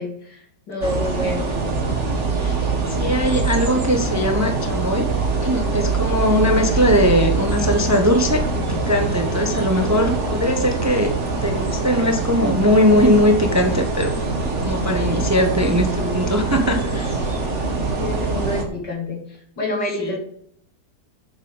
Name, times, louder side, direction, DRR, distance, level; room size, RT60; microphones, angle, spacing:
voice 1, 0.0-1.5 18.0-19.2 19.6-20.2, left 1 dB, 80° left, 0 dB, 3.5 m, -27 dB
sound 1, 0.8-18.6, right 3 dB, 40° right, 2.1 m, -23 dB
voice 2, 2.4-5.1 5.4-11.2 11.4-14.1 14.6-17.3 20.0-20.2, equal, 10° right, 5 dB, 0.9 m, -20 dB
8.3 x 7.6 x 7.2 m, 0.68 s
omnidirectional pair, 1.8 m